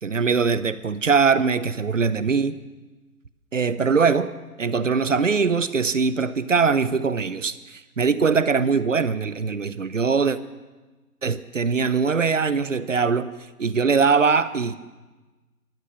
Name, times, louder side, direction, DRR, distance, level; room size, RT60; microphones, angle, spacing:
voice 1, 0.0-2.5 3.5-4.3 4.6-10.4 11.2-13.3 13.6-14.8, right 5 dB, 55° right, 15 dB, 0.7 m, -22 dB
14.5 x 12.0 x 6.4 m, 1.2 s
hypercardioid pair, 180°, 46 cm